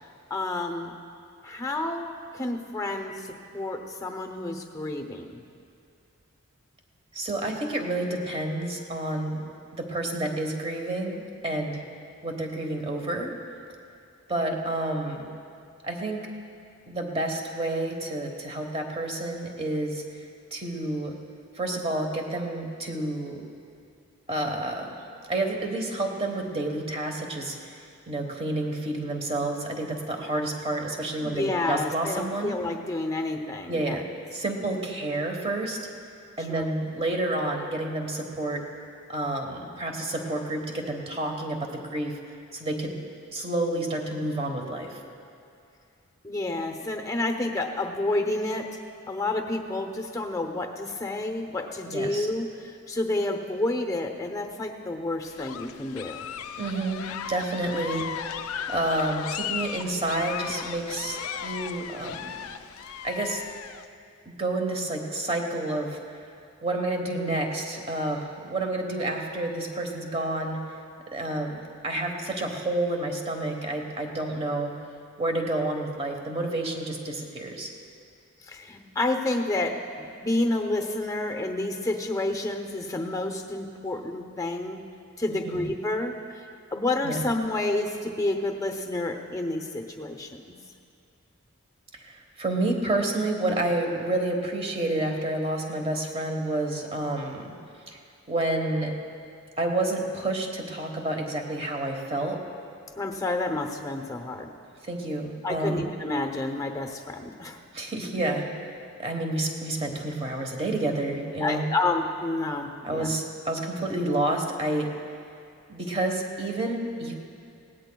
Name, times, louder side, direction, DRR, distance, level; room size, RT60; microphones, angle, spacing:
voice 1, 0.3-0.9 1.4-3.2 3.5-5.4 31.2-34.0 36.5-36.6 46.2-48.7 49.1-56.2 78.5-84.8 85.2-86.4 86.7-90.6 103.0-104.5 105.4-107.6 111.4-113.1, left 2 dB, 15° left, 4 dB, 0.7 m, -29 dB
voice 2, 7.1-9.4 9.7-11.8 12.2-13.3 14.3-15.3 15.8-16.2 16.9-20.0 20.5-21.1 21.5-23.4 24.3-24.9 25.3-27.6 28.1-32.5 33.7-34.0 34.3-35.8 36.4-38.6 39.1-42.2 42.5-43.0 43.3-45.0 51.8-52.3 56.6-57.0 57.3-58.0 58.7-62.4 63.0-63.4 64.2-66.0 66.6-70.6 71.1-71.6 71.8-74.7 75.2-77.7 85.3-85.6 87.0-87.2 92.0-97.5 97.9-98.0 98.3-98.9 99.6-102.4 104.9-105.9 107.7-108.5 109.0-111.7 112.8-114.9 115.7-117.1, right 2 dB, 25° right, 2 dB, 1.2 m, -29 dB
sound 1, 55.3-63.8, left 8 dB, 75° left, 0.4 m, -36 dB
20.0 x 17.0 x 2.3 m, 2.5 s
head